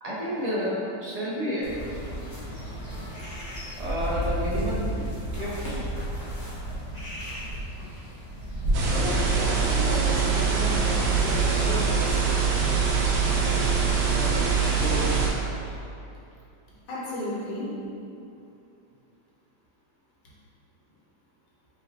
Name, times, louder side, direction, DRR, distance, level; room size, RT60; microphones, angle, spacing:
voice 1, 0.0-1.7 3.8-5.1 5.3-5.8 13.1-13.7 14.1-15.2 15.6-15.8, equal, 50° right, -7 dB, 0.4 m, -31 dB
sound 1, 1.6-9.3, right 1 dB, 30° left, 1.1 m, -32 dB
sound 2, 8.7-15.3, right 5 dB, 75° right, 1.3 m, -23 dB
voice 2, 8.8-12.3 16.9-17.9, left 1 dB, 90° left, -5 dB, 1.6 m, -33 dB
4.9 x 3.6 x 2.8 m, 2.7 s
omnidirectional pair, 1.9 m